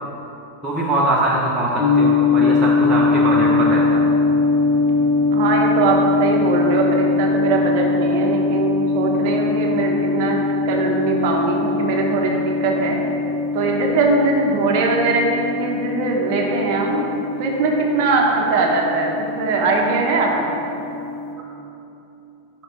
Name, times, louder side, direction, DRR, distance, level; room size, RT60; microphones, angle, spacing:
voice 1, 0.6-4.0, right 1 dB, 20° right, -5 dB, 0.8 m, -22 dB
sound 1, 1.8-21.3, left 3 dB, 20° left, 0.9 m, -21 dB
voice 2, 5.3-10.4 10.6-13.0 13.5-17.0 17.4-19.1 19.4-20.6, right 3 dB, 45° right, 0 dB, 0.9 m, -21 dB
5.4 x 5.2 x 4.4 m, 2.9 s
figure-of-eight pair, 90°, 0 cm